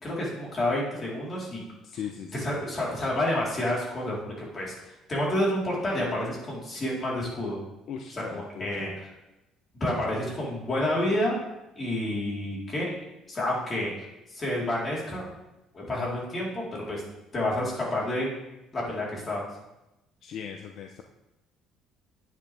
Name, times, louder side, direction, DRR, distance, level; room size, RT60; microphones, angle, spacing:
voice 1, 0.0-1.6 1.9-2.0 2.3-7.6 8.1-9.1 9.8-11.4 11.8-12.9 13.3-13.9 14.3-15.3 15.7-17.0 17.3-18.3 18.7-19.5, left 1 dB, 30° left, -5 dB, 4.0 m, -29 dB
voice 2, 1.8-2.4 7.9-8.7 20.2-21.0, left 8 dB, 60° left, 4 dB, 0.7 m, -38 dB
9.6 x 9.5 x 3.5 m, 0.95 s
cardioid pair, 115°, 0 cm